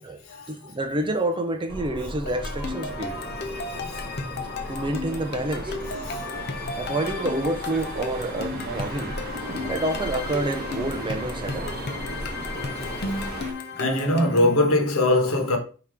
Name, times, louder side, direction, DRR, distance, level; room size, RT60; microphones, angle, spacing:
voice 1, 0.0-3.2 4.7-5.8 6.8-9.2 9.7-11.8 13.0-13.1, right 1 dB, 25° right, 0.5 m, -28 dB
sound 1, 1.7-13.5, equal, 15° left, 0.9 m, -37 dB
sound 2, 2.3-14.6, left 4 dB, 50° left, 0.6 m, -35 dB
sound 3, 2.9-13.5, right 1 dB, 45° right, 0.9 m, -38 dB
voice 2, 6.1-6.5 12.8-13.0 13.8-15.6, left 1 dB, 75° left, 1.1 m, -22 dB
3.7 x 2.8 x 4.7 m
head